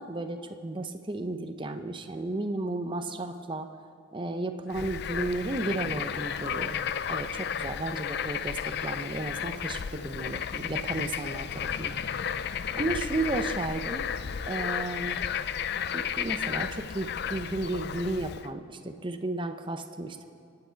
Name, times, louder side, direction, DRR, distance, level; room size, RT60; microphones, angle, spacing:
voice 1, 0.0-3.7 4.1-12.0 12.7-14.0 14.5-15.2 15.9-20.2, right 2 dB, 25° right, 7 dB, 0.7 m, -33 dB
Bird / Frog, 4.7-18.5, left 8 dB, 55° left, 0.4 m, -33 dB
25.0 x 8.8 x 4.6 m, 2.3 s
head